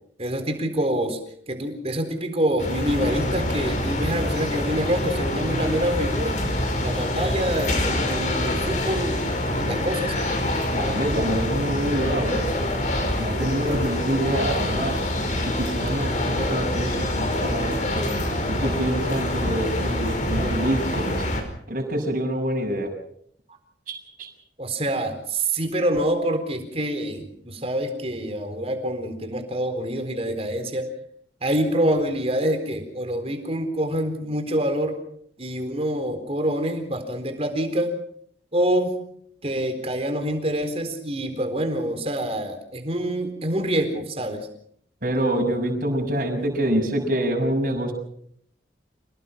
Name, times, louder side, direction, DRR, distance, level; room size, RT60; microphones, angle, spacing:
voice 1, 0.2-1.2 1.5-6.4 6.8-9.3 9.5-10.2 24.6-30.9 31.4-35.0 35.4-38.0 38.5-39.0 39.4-44.5, right 1 dB, 35° right, 7 dB, 4.1 m, -26 dB
sound 1, 2.6-21.4, left 1 dB, 45° left, 5.0 m, -26 dB
voice 2, 10.7-12.4 13.2-15.0 15.4-18.1 18.5-21.3 21.7-22.9 23.9-24.3 45.0-47.9, right 1 dB, 50° right, 1 dB, 6.6 m, -26 dB
28.0 x 19.0 x 5.9 m, 0.65 s
head